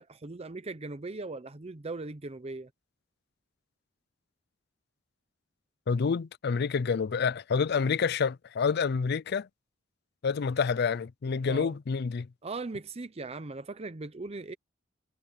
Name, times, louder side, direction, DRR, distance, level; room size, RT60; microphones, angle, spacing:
voice 1, 0.0-2.7 11.5-11.7 12.4-14.5, right 3 dB, 30° right, 0.7 m, -39 dB
voice 2, 5.9-9.5 10.2-12.3, left 5 dB, 55° left, 0.4 m, -28 dB
head